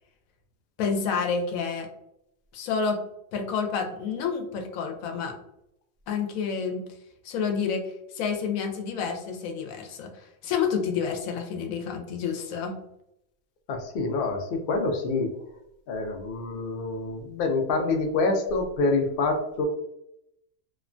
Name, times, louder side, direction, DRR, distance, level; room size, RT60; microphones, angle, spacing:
voice 1, 0.8-1.9 2.5-3.0 3.3-5.3 6.1-6.9 7.2-7.9 8.1-10.1 10.4-12.8, left 6 dB, 85° left, 4 dB, 1.0 m, -29 dB
voice 2, 13.7-15.3 15.9-19.7, left 3 dB, 60° left, 4 dB, 0.5 m, -26 dB
2.9 x 2.1 x 2.4 m, 0.79 s
omnidirectional pair, 1.4 m